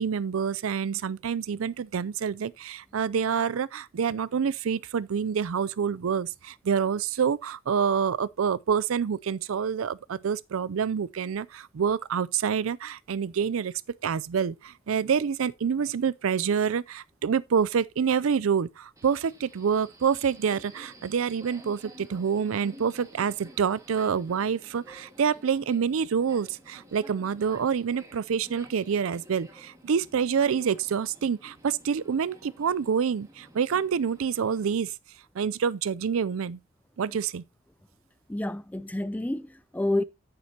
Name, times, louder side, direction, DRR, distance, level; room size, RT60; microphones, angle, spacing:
voice 1, 0.0-13.7 14.0-34.9 35.4-36.6 37.0-37.4, right 7 dB, 80° right, 0.4 m, -27 dB
Subway metro underground, 19.0-34.7, right 1 dB, 15° right, 1.8 m, -52 dB
voice 2, 38.3-40.0, left 1 dB, 5° left, 0.4 m, -29 dB
9.6 x 9.5 x 2.8 m
head